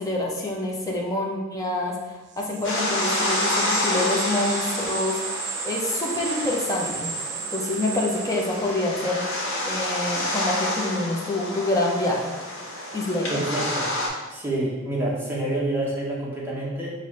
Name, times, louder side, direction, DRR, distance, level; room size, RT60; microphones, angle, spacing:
voice 1, 0.0-5.2 5.6-7.1 7.5-12.4 12.9-13.4, left 2 dB, 20° left, -2 dB, 0.6 m, -27 dB
sound 1, 2.3-8.9, right 6 dB, 60° right, 0.4 m, -33 dB
sound 2, 2.6-14.1, left 1 dB, 85° left, 1.1 m, -29 dB
voice 2, 13.3-13.9 14.3-16.9, right 1 dB, 10° right, -6 dB, 1.0 m, -27 dB
5.3 x 2.7 x 3.2 m, 1.2 s
head